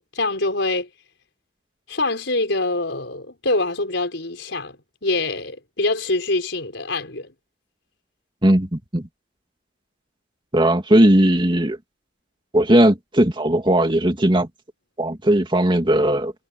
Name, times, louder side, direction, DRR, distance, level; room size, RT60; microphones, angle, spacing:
voice 1, 0.1-0.9 1.9-4.8 5.0-7.3, left 2 dB, 70° left, 5.7 m, -24 dB
voice 2, 8.4-9.1 10.5-11.8 12.5-14.5 15.0-16.3, right 1 dB, 25° right, 2.5 m, -17 dB
head